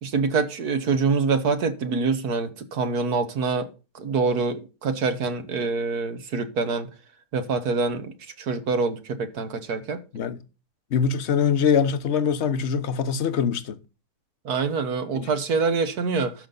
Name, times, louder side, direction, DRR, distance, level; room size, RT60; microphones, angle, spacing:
voice 1, 0.0-3.7 3.9-6.9 7.3-10.0 14.4-16.3, right 4 dB, 65° right, 1.7 m, -25 dB
voice 2, 10.9-13.8 15.1-15.3, left 7 dB, 50° left, 1.1 m, -23 dB
12.5 x 7.0 x 3.9 m
omnidirectional pair, 1.8 m